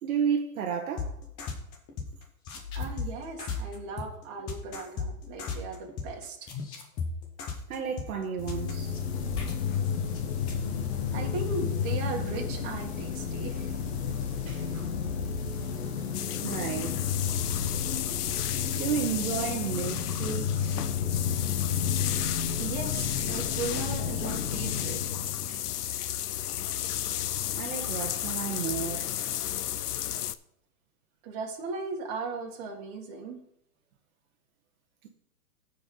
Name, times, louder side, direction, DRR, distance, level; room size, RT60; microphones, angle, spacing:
voice 1, 0.0-1.1 7.7-8.9 14.4-14.9 16.4-17.1 18.8-20.8 25.5-25.6 27.6-29.1, right 7 dB, 65° right, 1.3 m, -32 dB
sound 1, 1.0-2.1 2.5-10.2 10.5-10.6, left 5 dB, 10° left, 0.4 m, -35 dB
voice 2, 2.8-6.4 11.1-13.9 22.6-25.1 31.2-33.4, right 4 dB, 30° right, 1.9 m, -37 dB
sound 2, 8.4-25.9, left 7 dB, 45° left, 1.4 m, -32 dB
sound 3, 16.1-30.3, left 12 dB, 85° left, 0.6 m, -33 dB
13.5 x 4.7 x 3.9 m
hypercardioid pair, 145°, 46 cm